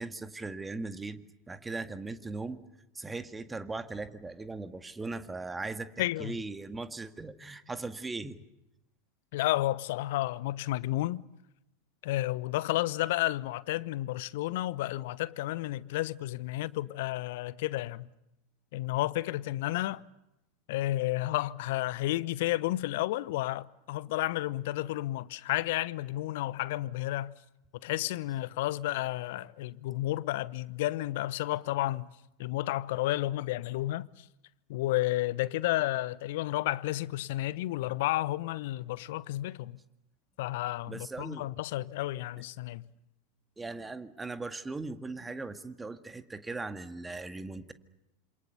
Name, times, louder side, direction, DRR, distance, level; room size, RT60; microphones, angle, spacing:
voice 1, 0.0-2.6 2.9-8.4 40.9-41.5 43.6-47.7, right 3 dB, 10° right, 2.0 m, -39 dB
voice 2, 6.0-6.4 9.3-11.3 12.0-18.1 18.7-20.0 20.7-27.3 27.8-32.1 32.4-34.2 34.7-39.8 40.4-42.9, left 16 dB, 60° left, 0.9 m, -31 dB
27.5 x 27.5 x 6.9 m
figure-of-eight pair, 85°, 0 cm